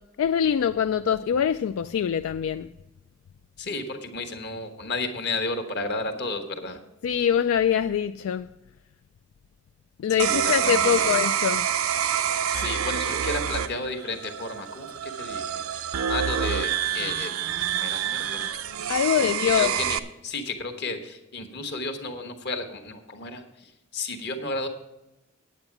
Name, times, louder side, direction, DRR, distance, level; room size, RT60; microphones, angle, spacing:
voice 1, 0.2-2.7 7.0-8.5 10.0-11.7 18.9-19.7, left 8 dB, 80° left, 0.3 m, -24 dB
voice 2, 3.6-6.8 10.2-11.1 12.5-17.3 17.8-18.6 19.2-24.7, left 2 dB, 50° left, 1.2 m, -33 dB
sound 1, 10.2-20.0, right 9 dB, 90° right, 0.6 m, -27 dB
8.8 x 8.8 x 5.8 m
head